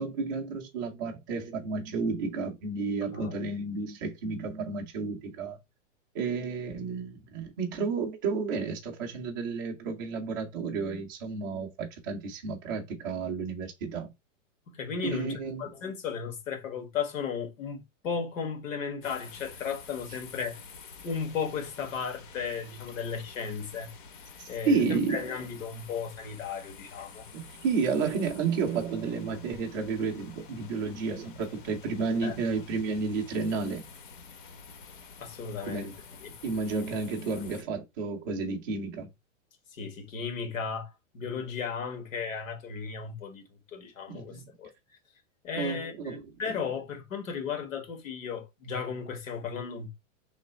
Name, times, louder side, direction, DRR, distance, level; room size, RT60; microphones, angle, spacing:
voice 1, 0.0-5.6 6.1-14.1 15.0-15.7 24.4-25.2 27.3-33.8 35.6-35.9 36.4-39.1 44.1-44.4 45.6-46.5, right 4 dB, 15° right, 0.4 m, -31 dB
voice 2, 3.0-3.3 14.7-20.6 21.0-23.9 24.5-27.3 32.2-32.3 35.2-35.9 36.2-36.3 37.4-37.5 39.7-43.4 43.7-44.7 45.4-49.9, left 6 dB, 80° left, 1.6 m, -35 dB
sound 1, 19.0-37.6, left 5 dB, 40° left, 0.7 m, -49 dB
3.1 x 2.9 x 3.9 m
supercardioid pair, 165°, 39 cm